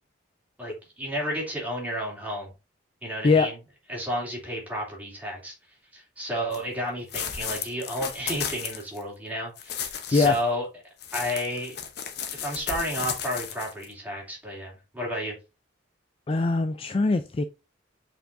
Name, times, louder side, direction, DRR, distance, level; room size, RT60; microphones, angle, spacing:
voice 1, 0.6-2.5 3.0-3.6 3.9-5.5 5.9-10.7 11.1-11.8 12.3-15.3, equal, 10° right, 2.9 m, -32 dB
sound 1, 6.5-6.6 7.1-9.0 9.6-10.4 11.0-13.9, left 8 dB, 60° left, 0.8 m, -34 dB
voice 2, 16.3-17.4, left 3 dB, 30° left, 0.3 m, -22 dB
7.7 x 4.6 x 2.6 m
head